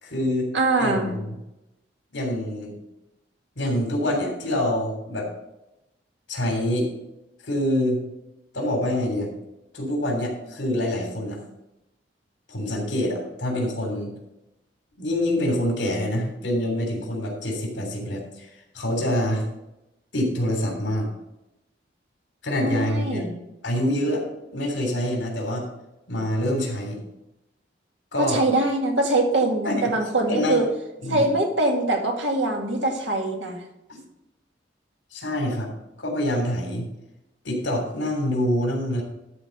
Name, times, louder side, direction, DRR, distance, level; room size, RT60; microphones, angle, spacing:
voice 1, 0.0-0.5 0.8-1.2 2.1-2.7 3.6-5.3 6.3-6.9 7.4-8.0 8.5-9.3 9.7-11.4 12.5-14.1 15.0-18.5 18.7-19.4 20.1-21.1 22.4-23.2 23.6-24.2 24.5-25.7 26.1-27.0 28.1-28.4 29.7-29.8 30.3-30.6 31.0-31.3 33.9-34.0 35.1-35.7 36.0-36.9 37.4-39.0, left 1 dB, 75° left, 1 dB, 3.3 m, -25 dB
voice 2, 0.5-1.1 22.6-23.4 28.2-30.6 31.1-33.6, right 2 dB, 80° right, 2 dB, 2.0 m, -23 dB
12.5 x 4.3 x 6.6 m, 0.91 s
head